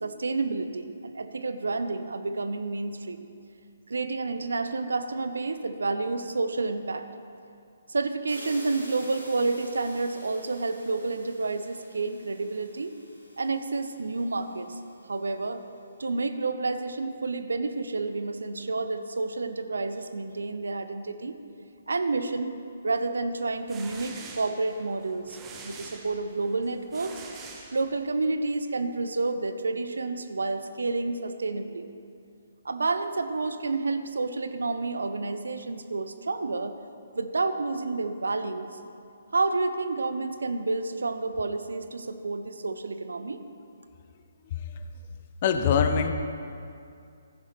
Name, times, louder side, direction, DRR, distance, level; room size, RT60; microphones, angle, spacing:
voice 1, 0.0-3.3 3.9-7.1 7.9-12.9 13.4-14.7 15.1-15.6 16.0-21.4 21.9-22.5 22.8-25.4 25.6-27.2 27.7-31.9 32.6-36.8 37.1-38.8 39.3-43.4, right 3 dB, 65° right, 10 dB, 0.7 m, -29 dB
sound 1, 8.3-15.1, equal, 85° right, 3.1 m, -48 dB
sound 2, 23.4-28.3, right 4 dB, 15° right, 1.0 m, -45 dB
voice 2, 45.4-46.1, left 7 dB, 35° left, 8 dB, 0.7 m, -23 dB
14.5 x 10.0 x 3.4 m, 2.5 s
figure-of-eight pair, 135°, 0 cm